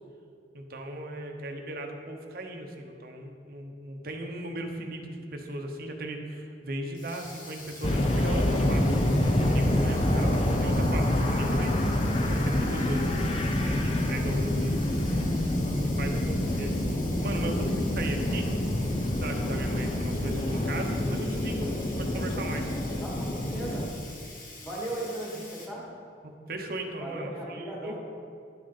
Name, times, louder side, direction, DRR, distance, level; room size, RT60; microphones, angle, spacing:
voice 1, 0.5-9.0 9.4-11.8 12.3-13.1 13.6-14.8 15.9-16.8 17.2-17.7 18.0-18.5 19.1-22.7 26.2-28.0, right 1 dB, 55° right, 3 dB, 0.9 m, -37 dB
Sink (filling or washing), 6.9-25.7, left 3 dB, 50° left, 1.2 m, -46 dB
sound 1, 7.8-23.9, left 1 dB, 35° left, 0.7 m, -27 dB
voice 2, 9.7-10.2 17.3-17.8 22.9-23.9 24.6-25.8 27.0-28.0, right 1 dB, 5° left, -6 dB, 2.2 m, -38 dB
11.0 x 6.3 x 4.1 m, 2.4 s
head